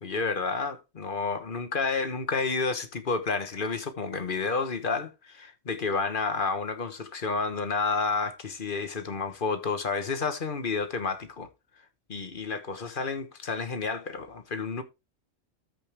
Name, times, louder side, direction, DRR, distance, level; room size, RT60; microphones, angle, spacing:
voice 1, 0.0-11.5 12.1-14.8, left 4 dB, 40° left, 1.2 m, -30 dB
13.5 x 5.2 x 3.4 m
omnidirectional pair, 1.4 m